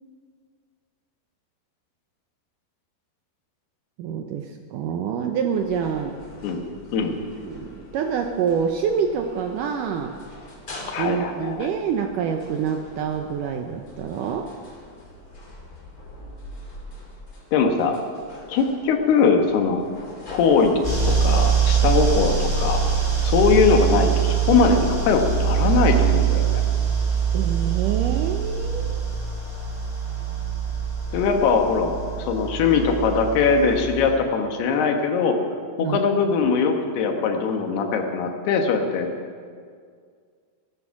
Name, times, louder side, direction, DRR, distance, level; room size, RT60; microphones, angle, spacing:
voice 1, 4.0-6.2 7.4-10.1 11.0-14.5 27.3-29.1 35.8-36.0, right 7 dB, 75° right, 4 dB, 1.9 m, -26 dB
sound 1, 5.5-21.0, left 1 dB, 25° left, 2.4 m, -43 dB
voice 2, 10.9-11.7 17.5-18.0 18.5-19.8 20.3-20.7 21.1-22.8 23.2-26.6 31.1-35.4 35.8-39.1, left 5 dB, 80° left, 4 dB, 3.3 m, -21 dB
sound 2, 20.8-34.1, right 7 dB, 5° right, 4.4 m, -23 dB
16.5 x 13.0 x 5.9 m, 2.1 s
omnidirectional pair, 4.5 m